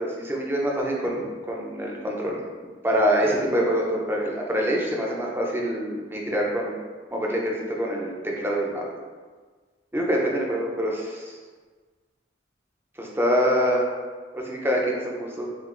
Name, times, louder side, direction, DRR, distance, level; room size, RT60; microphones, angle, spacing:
voice 1, 0.0-2.4 2.8-6.8 7.1-9.0 9.9-11.4 13.0-13.9 14.3-15.5, equal, 15° right, -2 dB, 0.6 m, -25 dB
7.4 x 2.5 x 2.5 m, 1.4 s
head